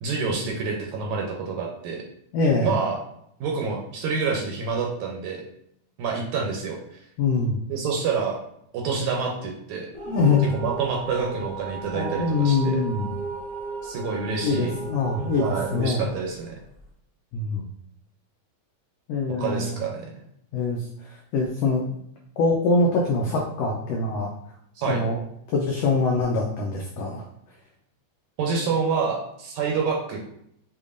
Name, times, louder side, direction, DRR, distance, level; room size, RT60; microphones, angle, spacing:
voice 1, 0.0-2.0 2.6-3.0 3.4-5.4 6.0-6.8 7.7-8.4 8.7-9.9 10.5-12.8 13.8-14.8 15.4-16.5 19.4-20.2 24.8-25.0 28.4-30.3, right 5 dB, 80° right, 0 dB, 1.9 m, -27 dB
voice 2, 2.3-2.7 7.2-7.6 10.1-10.5 11.9-13.1 14.4-16.1 17.3-17.7 19.1-19.8 20.5-21.9 22.4-24.3 24.8-25.2 25.5-27.3, left 3 dB, 85° left, -1 dB, 1.4 m, -24 dB
sound 1, 9.9-16.9, right 3 dB, 60° right, 1.0 m, -35 dB
6.7 x 2.9 x 2.5 m, 0.73 s
omnidirectional pair, 3.6 m